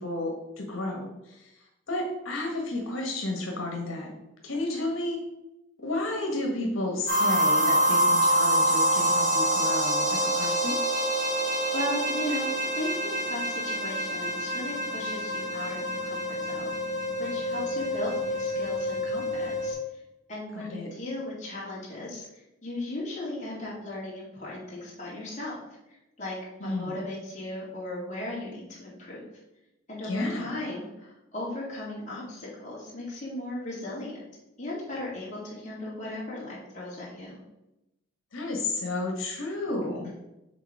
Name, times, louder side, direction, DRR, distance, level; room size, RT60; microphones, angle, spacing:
voice 1, 0.0-1.5 1.9-4.1 4.4-5.2 5.8-10.8 20.5-20.9 26.6-26.9 30.0-30.5 38.3-40.1, left 2 dB, 90° left, 0 dB, 1.3 m, -32 dB
sound 1, 7.1-19.7, right 1 dB, 45° right, 1.6 m, -26 dB
voice 2, 11.7-16.2 16.4-16.8 17.2-19.8 20.3-22.3 22.6-25.6 26.2-26.4 26.6-29.2 29.9-34.3 34.6-37.3, left 1 dB, 35° left, -6 dB, 2.3 m, -36 dB
6.6 x 3.9 x 4.8 m, 0.93 s
head